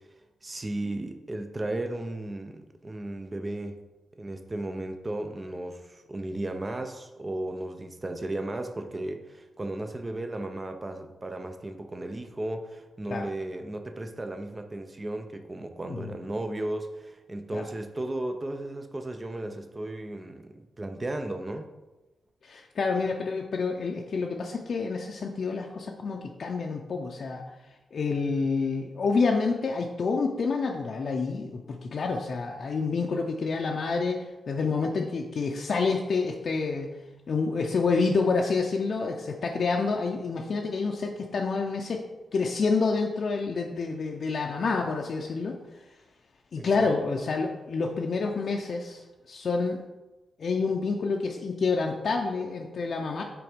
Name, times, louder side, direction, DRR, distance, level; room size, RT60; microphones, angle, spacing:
voice 1, 0.4-3.8 4.2-21.7 46.6-46.9, right 1 dB, 25° right, 6 dB, 0.6 m, -35 dB
voice 2, 22.4-27.4 27.9-36.9 37.3-42.0 42.3-45.5 46.5-49.8 50.4-53.2, left 4 dB, 60° left, 1 dB, 0.5 m, -28 dB
6.0 x 3.4 x 5.1 m, 1.1 s
cardioid pair, 85°, 0 cm